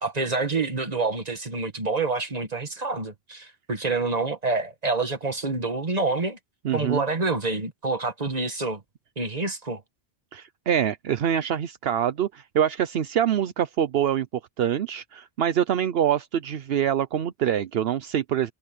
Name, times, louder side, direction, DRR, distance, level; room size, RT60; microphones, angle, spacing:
voice 1, 0.0-6.4 6.7-8.8 9.2-9.8, right 3 dB, 40° right, 1.9 m, -27 dB
voice 2, 6.6-7.0 10.3-14.3 14.6-18.5, right 9 dB, 75° right, 0.9 m, -25 dB
omnidirectional pair, 1.0 m